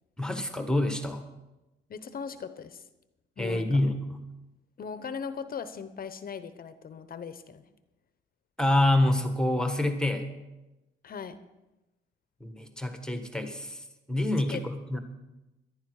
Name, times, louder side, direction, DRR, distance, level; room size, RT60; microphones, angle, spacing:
voice 1, 0.2-1.3 3.4-4.2 8.6-10.3 12.4-15.0, left 1 dB, 5° left, 6 dB, 1.4 m, -27 dB
voice 2, 1.9-2.9 3.4-3.7 4.8-7.6 11.0-11.4 14.5-14.6 14.9-15.0, left 6 dB, 50° left, 12 dB, 0.9 m, -39 dB
13.5 x 11.0 x 4.8 m, 1.0 s
cardioid pair, 90°, 20 cm